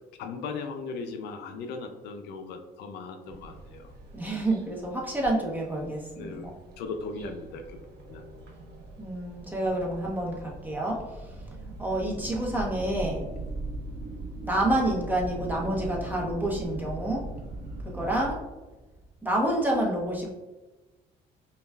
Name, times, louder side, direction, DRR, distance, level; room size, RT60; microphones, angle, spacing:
voice 1, 0.2-3.9 6.1-8.2, left 4 dB, 80° left, 6 dB, 0.4 m, -38 dB
sound 1, 3.3-18.3, right 2 dB, 75° right, 0.6 m, -40 dB
voice 2, 4.1-6.5 9.0-11.3 11.8-13.3 14.4-17.2 17.9-18.4 19.2-20.3, right 1 dB, 10° right, -2 dB, 0.9 m, -28 dB
5.1 x 2.3 x 2.3 m, 1.1 s
cardioid pair, 110°, 17 cm